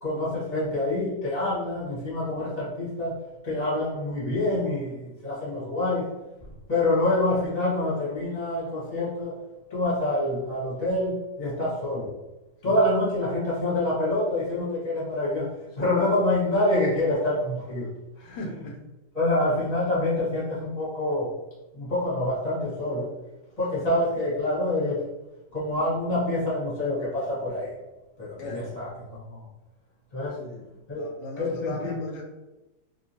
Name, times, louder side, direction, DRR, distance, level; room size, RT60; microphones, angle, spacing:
voice 1, 0.0-6.1 6.7-9.4 9.7-12.1 12.6-17.9 18.2-18.4 19.1-21.3 21.7-23.1 23.6-25.0 25.5-27.7 28.2-29.4 30.1-30.4 30.9-31.1 31.4-32.0, left 1 dB, 25° left, -7 dB, 1.2 m, -26 dB
voice 2, 18.2-18.8 28.4-28.7 30.4-30.7 30.9-32.2, left 1 dB, 90° left, 1 dB, 1.3 m, -38 dB
2.8 x 2.8 x 2.7 m, 1.0 s
omnidirectional pair, 1.8 m